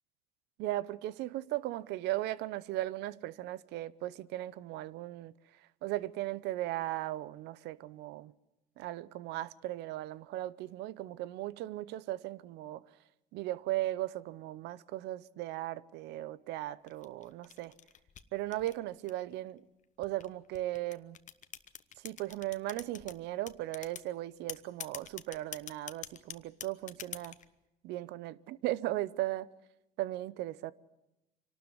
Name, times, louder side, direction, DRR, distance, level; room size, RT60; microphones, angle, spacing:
voice 1, 0.6-5.3 5.8-8.3 8.8-12.8 13.3-17.7 18.3-19.6 20.0-21.2 22.0-27.4 27.8-29.5 30.0-30.7, right 15 dB, 90° right, 0.7 m, -37 dB
sound 1, 16.9-19.3 20.0-23.2 23.5-24.1 24.5-27.5, left 9 dB, 45° left, 1.1 m, -45 dB
25.5 x 12.5 x 9.8 m
cardioid pair, 110°, 17 cm